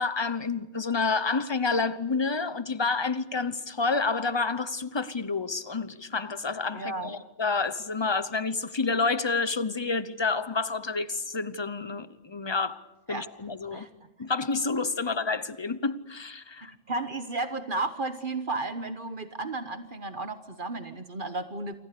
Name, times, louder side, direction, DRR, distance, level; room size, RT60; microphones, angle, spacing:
voice 1, 0.0-12.8 13.1-13.9 14.2-16.7, left 4 dB, 25° left, 0.9 m, -29 dB
voice 2, 6.7-7.1 13.1-13.3 13.7-13.9 16.7-21.8, right 2 dB, 55° right, 1.3 m, -33 dB
28.0 x 24.5 x 6.8 m
omnidirectional pair, 1.1 m